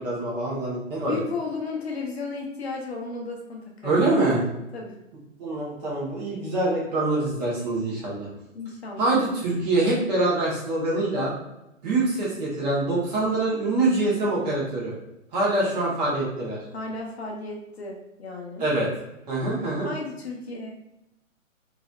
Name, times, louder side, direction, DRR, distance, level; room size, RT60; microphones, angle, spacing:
voice 1, 0.0-1.2 3.8-4.4 5.4-8.3 9.0-11.3 11.8-14.9 15.3-16.6 18.6-18.9 19.3-19.9, right 2 dB, 30° right, -6 dB, 1.1 m, -24 dB
voice 2, 1.1-4.2 4.7-5.0 8.5-9.2 16.7-18.7 19.8-20.7, left 4 dB, 50° left, 0 dB, 0.7 m, -34 dB
3.1 x 2.6 x 2.3 m, 0.91 s
figure-of-eight pair, 130°, 39 cm